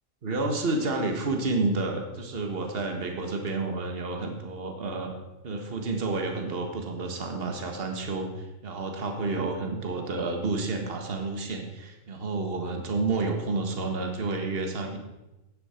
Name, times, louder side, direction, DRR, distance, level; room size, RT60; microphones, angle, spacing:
voice 1, 0.2-5.1 5.4-15.0, right 3 dB, 50° right, 4 dB, 1.6 m, -30 dB
11.0 x 9.8 x 4.3 m, 0.97 s
omnidirectional pair, 1.4 m